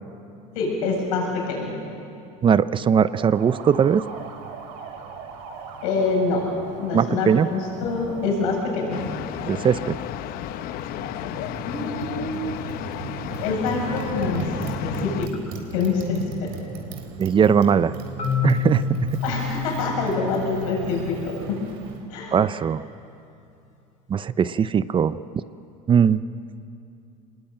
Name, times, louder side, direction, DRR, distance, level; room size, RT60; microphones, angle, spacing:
voice 1, 0.5-1.7 5.8-6.4 6.8-9.1 11.7-12.4 13.4-14.5 14.8-15.3 15.7-16.5 19.2-21.6 22.1-22.4, left 4 dB, 85° left, -1 dB, 7.8 m, -26 dB
voice 2, 2.4-4.0 6.9-7.5 9.5-9.9 17.2-17.9 18.4-19.2 22.3-22.8 24.1-25.2 25.9-26.2, right 7 dB, 30° right, 15 dB, 0.6 m, -19 dB
Motorcycle, 3.1-22.1, right 5 dB, 75° right, 3.7 m, -38 dB
sound 1, 8.9-15.3, left 13 dB, 60° left, 0.9 m, -33 dB
Marimba xylophone, 18.2-22.1, left 6 dB, 40° left, 2.7 m, -30 dB
26.0 x 20.5 x 8.9 m, 2.6 s
supercardioid pair, 110°, 18 cm